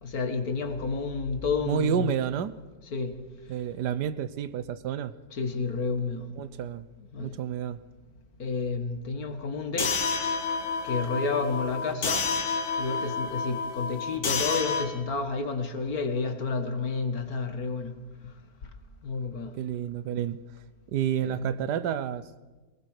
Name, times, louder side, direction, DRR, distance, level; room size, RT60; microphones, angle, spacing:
voice 1, 0.0-2.2 2.9-3.2 5.3-6.2 7.1-7.4 8.4-10.0 10.8-12.3 12.8-17.9 19.0-19.5 21.2-21.7, left 4 dB, 65° left, 2.1 m, -30 dB
voice 2, 1.6-2.5 3.5-5.1 6.4-6.9 7.2-7.8 19.6-20.4 20.9-22.3, right 9 dB, 85° right, 1.4 m, -30 dB
sound 1, 9.8-14.8, left 4 dB, 45° left, 1.7 m, -29 dB
22.5 x 19.5 x 6.6 m
omnidirectional pair, 1.7 m